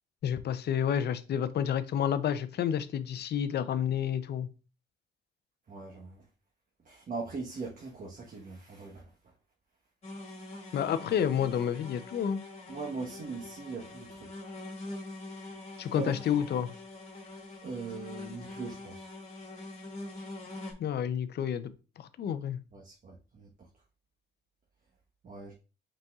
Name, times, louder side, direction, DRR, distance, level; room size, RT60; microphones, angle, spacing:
voice 1, 0.2-4.5 10.7-12.4 15.8-16.7 20.8-21.7 22.0-22.6, left 9 dB, 55° left, 0.6 m, -30 dB
voice 2, 5.7-6.2 6.8-9.1 12.7-14.3 15.9-16.1 17.6-19.1 22.7-23.5 25.2-25.5, right 4 dB, 45° right, 1.2 m, -40 dB
sound 1, 10.0-20.7, left 2 dB, 35° left, 1.7 m, -44 dB
5.3 x 4.1 x 2.4 m
cardioid pair, 90°, 20 cm